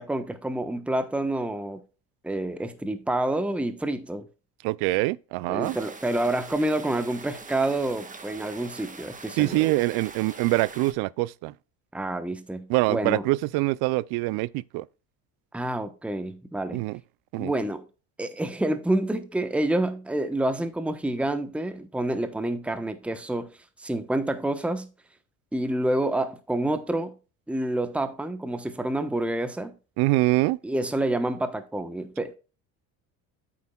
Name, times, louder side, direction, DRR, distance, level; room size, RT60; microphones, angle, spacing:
voice 1, 0.0-1.8 2.2-4.3 5.5-9.7 11.9-13.2 15.5-16.8 17.4-17.8 18.2-23.5 23.8-24.9 25.5-27.1 27.5-29.7 30.6-32.3, right 1 dB, 5° right, 1.0 m, -28 dB
voice 2, 4.6-5.8 9.4-11.5 12.7-14.9 16.7-17.0 17.3-17.5 30.0-30.6, right 20 dB, 70° right, 0.5 m, -24 dB
sound 1, 5.6-10.9, right 4 dB, 20° right, 1.4 m, -43 dB
8.7 x 8.4 x 2.3 m
supercardioid pair, 95°, 39 cm